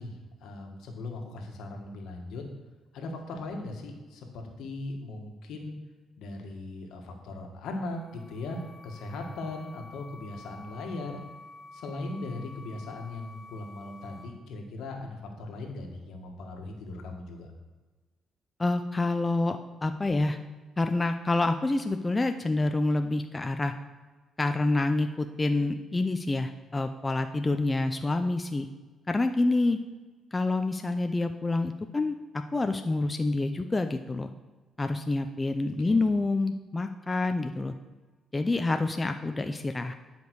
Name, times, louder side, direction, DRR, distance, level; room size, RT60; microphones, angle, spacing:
voice 1, 0.0-2.4 2.9-5.7 6.2-11.2 11.7-17.5 35.8-36.0, left 2 dB, 80° left, 2 dB, 1.6 m, -39 dB
sound 1, 7.8-14.2, left 2 dB, 45° right, 2.6 m, -49 dB
voice 2, 18.6-20.4 20.8-23.7 24.4-28.7 29.1-29.8 30.3-34.3 34.8-37.7 38.3-39.9, left 2 dB, 20° left, 7 dB, 0.5 m, -27 dB
10.5 x 5.2 x 4.7 m, 1.3 s
cardioid pair, 90°, 0 cm